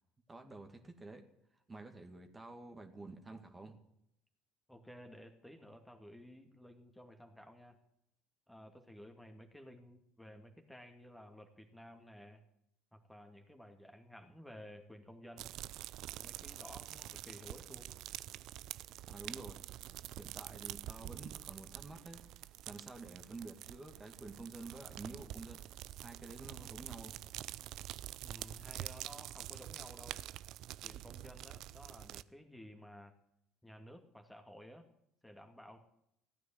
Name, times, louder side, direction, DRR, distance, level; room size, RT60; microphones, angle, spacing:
voice 1, 0.3-1.3 1.7-3.8 19.1-19.6 20.2-22.2 22.6-25.6 26.0-27.2, right 2 dB, 20° right, 4 dB, 2.1 m, -50 dB
voice 2, 4.7-7.8 8.5-12.4 12.9-15.5 16.2-17.9 28.2-30.2 30.8-33.1 33.6-34.8 35.2-35.8, equal, 5° left, 4 dB, 2.3 m, -54 dB
sound 1, 15.4-32.2, right 14 dB, 60° right, 0.5 m, -47 dB
15.5 x 9.3 x 8.9 m, 0.78 s
hypercardioid pair, 65°, 0 cm